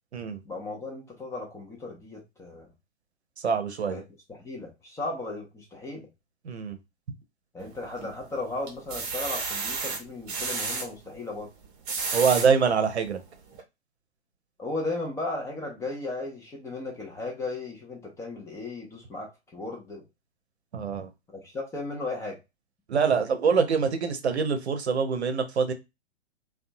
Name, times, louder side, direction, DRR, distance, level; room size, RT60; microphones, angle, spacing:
voice 1, 0.4-2.7 3.9-4.0 4.3-6.1 7.5-11.5 14.6-20.0 21.3-22.4, left 2 dB, 10° left, 0.5 m, -35 dB
voice 2, 3.4-4.0 6.5-6.8 12.1-13.2 20.7-21.1 22.9-25.7, right 5 dB, 75° right, 0.7 m, -24 dB
sound 1, 7.6-8.2 8.7-10.9 11.6-12.5 13.1-13.2 13.5-13.6, right 4 dB, 35° right, 0.8 m, -31 dB
2.6 x 2.3 x 2.6 m
figure-of-eight pair, 110°, 33 cm